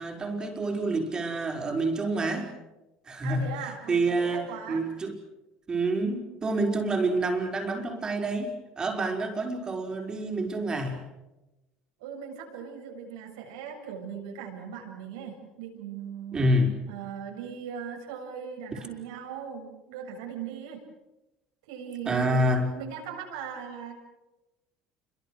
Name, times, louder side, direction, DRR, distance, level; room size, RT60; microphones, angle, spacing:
voice 1, 0.0-2.5 3.1-5.2 5.7-11.0 16.3-16.7 18.7-18.8 22.1-22.7, right 2 dB, 25° right, 3 dB, 5.3 m, -28 dB
voice 2, 3.2-4.8 12.0-16.4 16.9-20.8 21.7-22.4 22.7-23.9, right 7 dB, 85° right, 2 dB, 7.3 m, -39 dB
28.0 x 24.0 x 6.5 m, 1.0 s
supercardioid pair, 95°, 3 cm